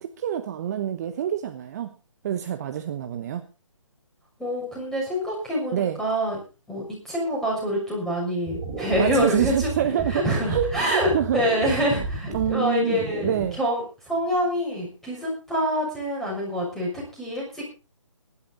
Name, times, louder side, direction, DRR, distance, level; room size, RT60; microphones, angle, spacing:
voice 1, 0.0-1.9 2.2-3.4 5.7-6.0 9.0-11.4 12.3-13.6, right 10 dB, 30° right, 8 dB, 1.1 m, -27 dB
voice 2, 4.4-6.4 6.7-9.7 10.1-17.6, equal, ahead, -3 dB, 6.5 m, -26 dB
sound 1, 8.5-13.5, right 3 dB, 15° right, 6.4 m, -33 dB
20.5 x 11.5 x 4.1 m, 0.33 s
figure-of-eight pair, 150°, 16 cm